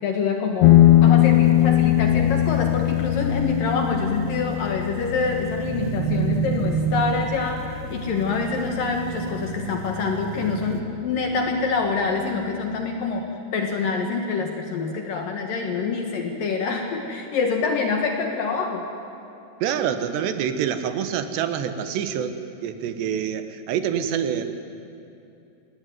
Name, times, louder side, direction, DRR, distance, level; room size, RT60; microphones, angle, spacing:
voice 1, 0.0-18.8, left 4 dB, 60° left, 3 dB, 2.9 m, -26 dB
sound 1, 0.6-9.6, left 14 dB, 80° left, 3.1 m, -21 dB
sound 2, 1.2-10.8, right 8 dB, 55° right, 1.5 m, -31 dB
voice 2, 19.6-24.4, right 8 dB, 85° right, 9 dB, 3.4 m, -26 dB
26.0 x 19.5 x 9.4 m, 2.7 s
omnidirectional pair, 4.8 m